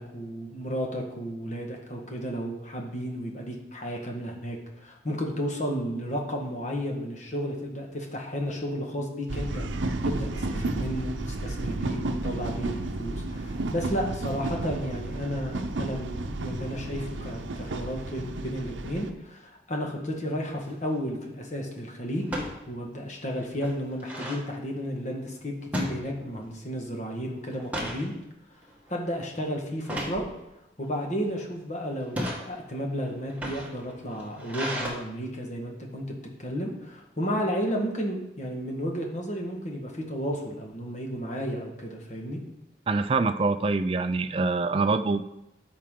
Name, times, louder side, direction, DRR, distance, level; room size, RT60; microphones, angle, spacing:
voice 1, 0.0-9.6 10.0-22.3 22.7-28.1 28.9-30.2 30.8-42.4, equal, 40° left, 0 dB, 1.5 m, -33 dB
sound 1, 9.3-19.1, right 2 dB, 90° right, 0.7 m, -32 dB
sound 2, 20.5-20.8 22.2-22.6 23.0-23.1 23.4-24.4 25.7-26.5 26.9-27.1 27.5-28.1 28.6-28.9 29.8-30.2 31.0-31.4 32.0-32.4 33.2-34.9, equal, 10° right, 1.3 m, -34 dB
voice 2, 42.9-45.2, right 3 dB, 30° right, 9 dB, 0.4 m, -25 dB
13.0 x 4.7 x 3.8 m, 0.92 s
head